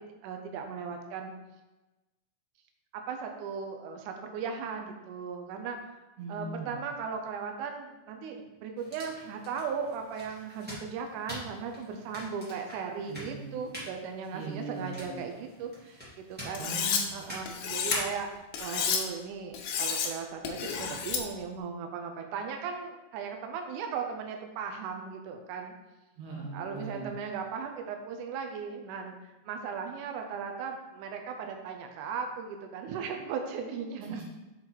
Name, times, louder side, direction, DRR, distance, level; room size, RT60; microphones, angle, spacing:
voice 1, 0.0-1.3 2.9-5.8 6.3-16.7 17.1-18.3 18.6-25.7 26.5-29.1 29.5-34.1, right 6 dB, 85° right, 4 dB, 1.7 m, -37 dB
voice 2, 6.2-6.9 13.1-13.6 14.3-15.2 16.6-17.4 26.2-27.1 34.1-34.2, right 2 dB, 60° right, -3 dB, 2.6 m, -40 dB
sound 1, 8.8-18.4, left 1 dB, 15° right, 0.3 m, -44 dB
Cutlery silverware, 16.6-17.0 17.5-18.0 18.5-19.0 19.5-20.1 20.5-21.2, left 7 dB, 75° left, 2.2 m, -30 dB
6.2 x 3.9 x 4.3 m, 1.1 s
omnidirectional pair, 4.3 m